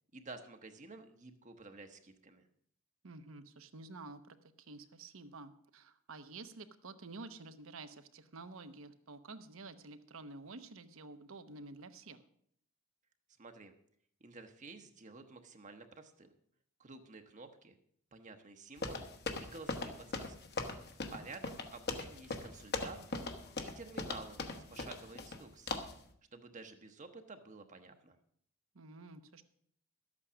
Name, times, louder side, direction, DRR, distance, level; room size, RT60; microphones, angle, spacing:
voice 1, 0.1-2.5 13.4-13.7 14.2-16.3 16.8-17.7 18.1-19.1 19.4-20.5 20.9-23.3 23.6-25.9 26.3-28.2, right 3 dB, 35° right, 6 dB, 0.9 m, -51 dB
voice 2, 3.0-12.2 21.0-21.3 28.7-29.4, right 3 dB, 65° right, 10 dB, 0.9 m, -50 dB
sound 1, 18.8-25.4 25.7-26.0, left 3 dB, 50° left, 1.2 m, -40 dB
12.5 x 8.5 x 6.2 m, 0.64 s
head